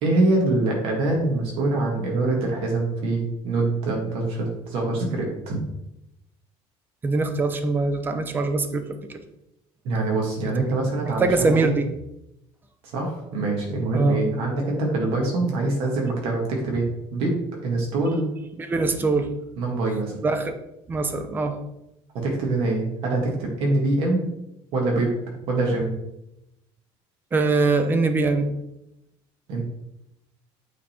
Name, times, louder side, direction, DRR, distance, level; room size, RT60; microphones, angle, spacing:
voice 1, 0.0-5.6 9.8-11.7 12.9-17.3 17.6-18.3 19.6-20.2 22.1-24.2 24.7-25.1 25.5-25.9 29.5-29.6, right 2 dB, 55° right, 0 dB, 1.8 m, -24 dB
voice 2, 7.0-9.0 10.6-10.7 11.0-11.9 13.9-14.2 18.6-19.3 20.2-20.5 20.9-21.6 27.3-28.5, right 3 dB, 15° right, 8 dB, 0.6 m, -22 dB
8.6 x 4.0 x 4.4 m, 0.85 s
cardioid pair, 175°, 11 cm